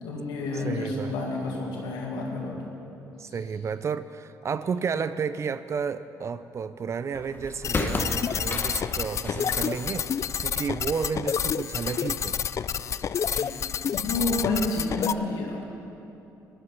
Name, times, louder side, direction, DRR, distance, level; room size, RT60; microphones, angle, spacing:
voice 1, 0.0-2.7 13.4-13.5 13.9-15.6, left 2 dB, 85° left, -1 dB, 2.1 m, -29 dB
voice 2, 0.5-1.2 3.2-10.1 10.4-12.4, right 6 dB, 45° right, 13 dB, 0.5 m, -32 dB
sound 1, 7.1-13.6, left 2 dB, 30° left, 1.4 m, -36 dB
sound 2, 7.6-15.1, left 8 dB, 45° left, 0.4 m, -29 dB
14.5 x 11.5 x 5.7 m, 2.8 s
supercardioid pair, 75°, 7 cm